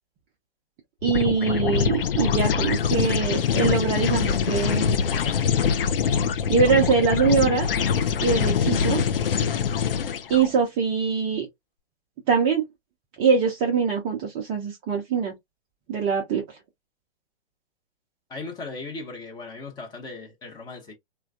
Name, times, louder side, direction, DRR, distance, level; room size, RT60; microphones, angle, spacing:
sound 1, 1.0-10.5, left 7 dB, 70° left, 0.5 m, -24 dB
voice 1, 1.0-5.0 6.5-7.7 8.2-9.0 10.3-11.5 12.3-12.7 13.2-15.3 15.9-16.6, right 5 dB, 15° right, 0.4 m, -23 dB
voice 2, 18.3-20.9, left 3 dB, 15° left, 0.7 m, -37 dB
3.1 x 2.2 x 2.3 m
figure-of-eight pair, 120°, 30 cm